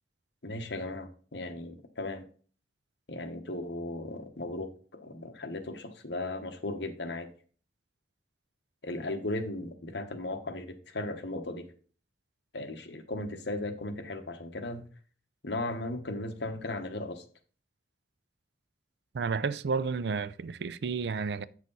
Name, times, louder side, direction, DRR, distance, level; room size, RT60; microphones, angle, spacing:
voice 1, 0.4-2.2 3.1-7.3 8.8-11.7 12.5-14.8 15.4-17.2, left 2 dB, 70° left, 1.2 m, -36 dB
voice 2, 19.1-21.5, right 5 dB, 65° right, 0.4 m, -31 dB
8.2 x 6.4 x 4.0 m
head